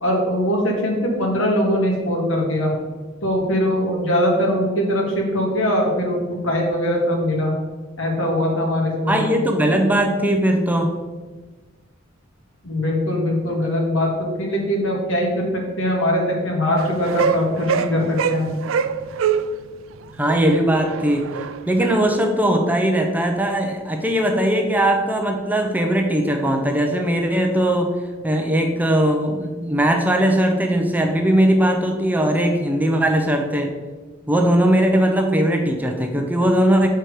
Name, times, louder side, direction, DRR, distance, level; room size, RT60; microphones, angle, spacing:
voice 1, 0.0-2.7 3.2-7.5 8.0-9.3 12.6-18.6, equal, 75° left, -1 dB, 1.9 m, -21 dB
voice 2, 9.1-10.9 20.2-21.3 21.7-27.9 28.2-33.7 34.3-36.9, right 1 dB, 10° right, 3 dB, 0.6 m, -19 dB
sound 1, 16.8-19.6 20.1-22.2, right 7 dB, 85° right, 0.4 m, -25 dB
6.7 x 4.5 x 4.8 m, 1.3 s
head